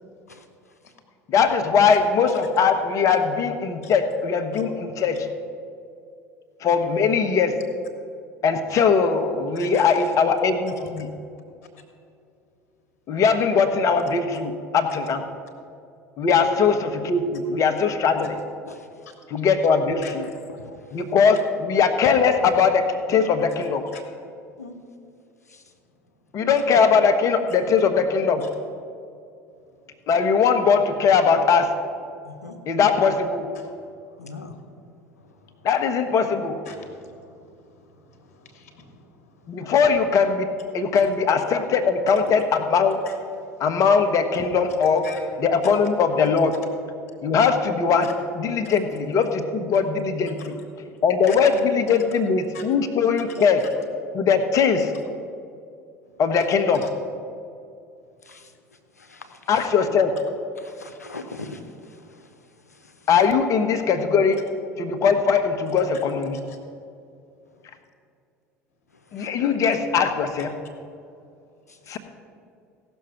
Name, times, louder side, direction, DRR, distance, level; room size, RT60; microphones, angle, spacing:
voice 1, 1.3-5.3 6.6-7.6 8.4-11.1 13.1-15.3 16.2-18.4 19.3-20.3 20.9-23.9 26.3-28.5 30.1-31.7 32.7-33.5 35.6-36.6 39.5-43.0 43.6-45.1 45.4-46.6 47.2-50.6 51.0-53.7 54.1-54.9 56.2-56.9 59.5-60.2 63.1-64.4 64.8-66.4 69.1-70.6 71.9-72.0, left 5 dB, 40° left, 7 dB, 1.1 m, -20 dB
voice 2, 32.3-32.6 34.2-34.5 58.3-58.4 59.1-59.2 60.6-61.6 69.2-69.3, left 3 dB, 85° left, 7 dB, 0.8 m, -39 dB
voice 3, 36.7-37.6 38.3-38.9 43.1-43.2 45.0-45.2 47.0-47.2 50.4-50.5 50.8-51.0 51.3-51.4 52.5-52.7 66.5-66.6, left 6 dB, 65° left, 3 dB, 1.5 m, -43 dB
16.0 x 6.3 x 5.8 m, 2.4 s
figure-of-eight pair, 70°, 8 cm